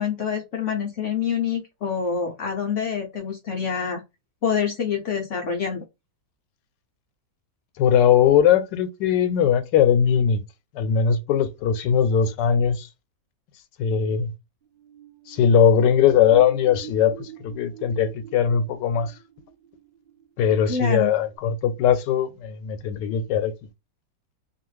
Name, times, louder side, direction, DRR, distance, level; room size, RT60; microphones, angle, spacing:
voice 1, 0.0-4.0 4.4-5.8 20.7-21.1, left 7 dB, 70° left, 0.7 m, -26 dB
voice 2, 7.8-10.4 10.7-12.9 13.8-14.3 15.3-19.1 20.4-23.5, left 8 dB, 90° left, 1.2 m, -20 dB
sound 1, 14.6-21.0 21.4-21.5, right 8 dB, 60° right, 0.6 m, -44 dB
2.7 x 2.4 x 3.1 m
omnidirectional pair, 1.8 m